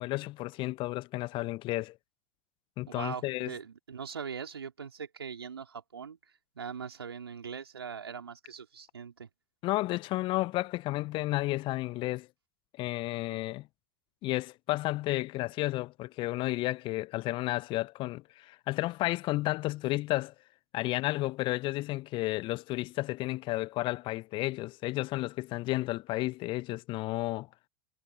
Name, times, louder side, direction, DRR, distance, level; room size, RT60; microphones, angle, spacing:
voice 1, 0.0-2.0 2.8-3.5 9.6-12.3 12.8-13.7 14.2-20.3 20.7-27.5, left 19 dB, 40° left, 0.9 m, -32 dB
voice 2, 2.9-6.2 6.6-9.3, right 6 dB, 75° right, 4.4 m, -41 dB
figure-of-eight pair, 85°, 13 cm